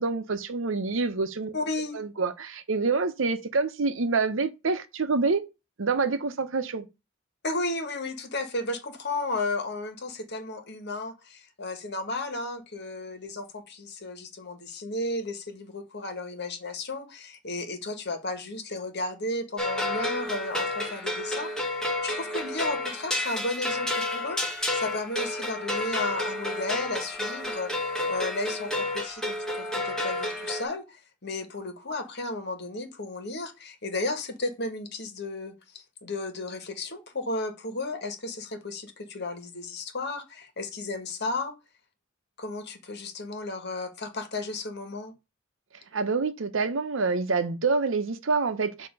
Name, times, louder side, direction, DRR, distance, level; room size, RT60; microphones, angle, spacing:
voice 1, 0.0-1.5 1.9-5.4 5.8-6.9 45.9-48.9, right 4 dB, 70° right, 0.8 m, -27 dB
voice 2, 1.5-2.0 7.4-41.5 42.4-45.1, left 2 dB, 55° left, 1.5 m, -34 dB
sound 1, 19.6-30.6, left 1 dB, 5° left, 1.4 m, -30 dB
6.9 x 2.9 x 5.2 m
head